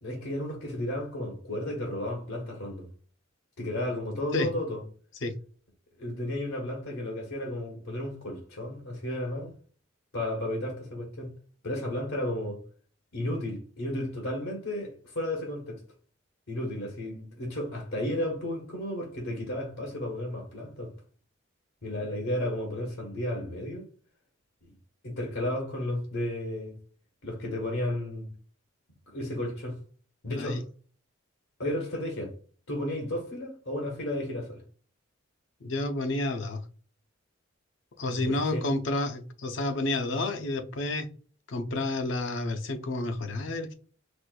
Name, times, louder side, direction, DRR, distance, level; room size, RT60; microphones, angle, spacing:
voice 1, 0.0-2.9 3.6-4.8 6.0-9.5 10.1-11.3 11.6-12.6 13.1-15.8 16.5-20.9 21.8-23.8 25.0-26.8 27.2-28.3 29.1-29.8 30.2-30.7 31.6-32.3 32.7-34.6 38.1-38.7, left 1 dB, 90° left, 1.1 m, -33 dB
voice 2, 30.3-30.6 35.6-36.6 38.0-41.1 41.5-43.7, left 2 dB, 65° left, 0.5 m, -30 dB
4.3 x 2.4 x 2.2 m
head